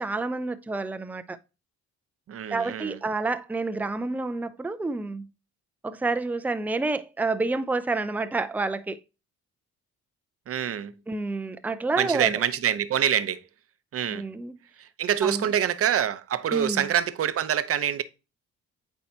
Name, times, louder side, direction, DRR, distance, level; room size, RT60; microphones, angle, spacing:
voice 1, 0.0-1.4 2.5-5.3 5.8-9.0 11.1-12.3 14.1-14.6 15.2-15.5 16.5-16.9, right 3 dB, 5° right, 0.5 m, -29 dB
voice 2, 2.3-3.0 10.5-10.9 12.0-13.4 13.9-14.3 14.8-18.0, right 9 dB, 50° right, 0.7 m, -26 dB
8.7 x 4.5 x 2.8 m
cardioid pair, 90°, 30 cm